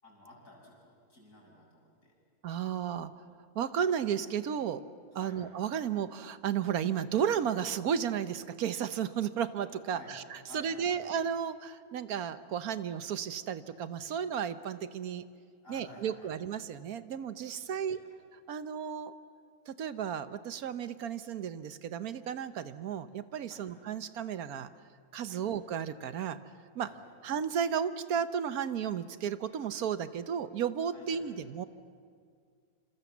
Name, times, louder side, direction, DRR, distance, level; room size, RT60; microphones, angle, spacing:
voice 1, 0.0-2.2 5.1-5.4 9.9-10.2 10.5-11.0 15.6-16.4 17.5-18.1 23.4-23.7 25.3-25.5 26.8-27.1 30.9-31.4, left 1 dB, 60° left, -2 dB, 7.3 m, -53 dB
voice 2, 2.4-3.1 3.5-4.8 5.1-10.2 10.5-15.2 15.7-18.0 18.5-19.1 19.7-24.7 25.1-26.4 26.7-26.9 27.2-31.7, right 8 dB, 75° right, 12 dB, 1.4 m, -33 dB
27.0 x 26.5 x 7.3 m, 2.1 s
omnidirectional pair, 1.6 m